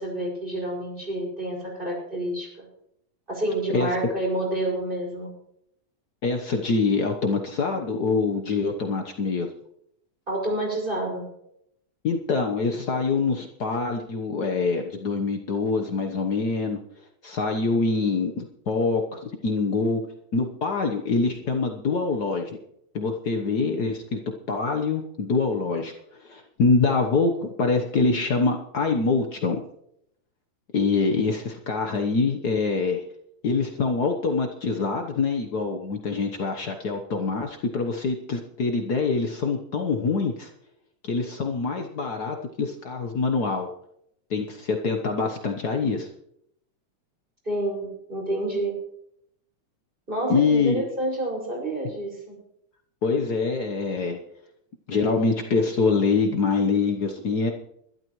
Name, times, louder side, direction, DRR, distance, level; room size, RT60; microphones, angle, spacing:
voice 1, 0.0-2.7 3.3-5.3 10.3-11.2 47.4-48.8 50.1-52.4, right 1 dB, 15° right, -2 dB, 6.0 m, -28 dB
voice 2, 6.2-9.5 12.0-16.8 17.2-20.0 20.3-22.6 22.9-24.2 24.5-29.6 30.7-33.0 33.4-40.5 41.0-43.7 44.3-46.1 50.3-50.8 53.0-54.2 54.9-57.5, left 4 dB, 80° left, 3 dB, 0.8 m, -25 dB
22.5 x 12.5 x 3.1 m, 0.73 s
omnidirectional pair, 3.5 m